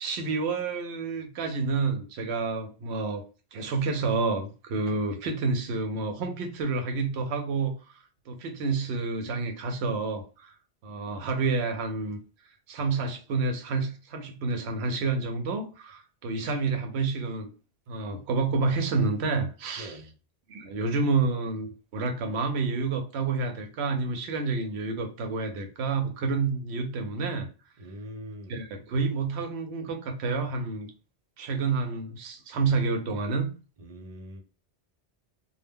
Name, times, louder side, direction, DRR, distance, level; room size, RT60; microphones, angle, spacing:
voice 1, 0.0-3.2 3.5-7.7 8.3-10.5 10.8-12.2 12.7-17.5 17.9-20.0 20.5-27.5 28.5-30.9 31.4-33.5, right 4 dB, 80° right, 0.9 m, -29 dB
voice 2, 19.8-20.1 27.8-28.5 33.8-34.4, equal, 50° right, 0.5 m, -42 dB
2.1 x 2.1 x 3.4 m
omnidirectional pair, 1.1 m